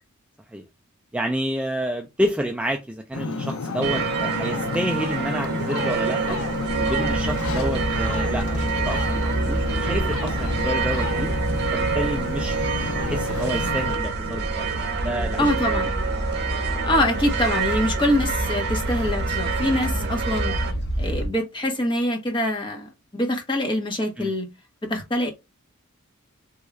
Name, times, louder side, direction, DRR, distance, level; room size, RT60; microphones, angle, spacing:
voice 1, 1.1-6.4 6.8-11.3 11.7-12.7 13.0-14.7 15.0-15.8 24.2-24.3, equal, 5° right, 0.3 m, -29 dB
Ocean, 3.1-14.0, left 3 dB, 75° left, 0.5 m, -30 dB
sound 1, 3.8-20.7, right 5 dB, 50° right, 0.7 m, -28 dB
sound 2, 6.7-21.3, right 1 dB, 55° left, 1.2 m, -29 dB
voice 2, 15.4-15.9 16.8-20.5 21.0-24.5 24.9-25.3, left 1 dB, 25° left, 1.0 m, -24 dB
3.6 x 2.3 x 3.1 m
head